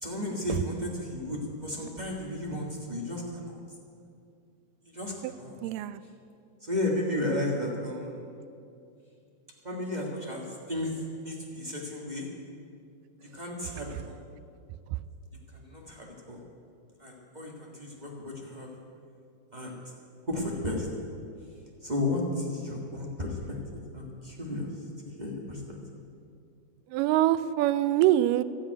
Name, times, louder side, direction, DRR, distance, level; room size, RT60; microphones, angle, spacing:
voice 1, 0.0-3.6 4.9-5.5 6.6-8.2 9.6-12.3 13.3-14.2 15.5-16.4 17.0-18.7 19.5-19.7 20.3-20.9 21.8-23.4 23.9-24.7 25.0-25.6, left 1 dB, 30° right, -2 dB, 0.8 m, -33 dB
voice 2, 5.6-6.0 26.9-28.4, right 13 dB, 90° right, 15 dB, 2.2 m, -24 dB
13.0 x 9.4 x 9.2 m, 2.5 s
omnidirectional pair, 3.8 m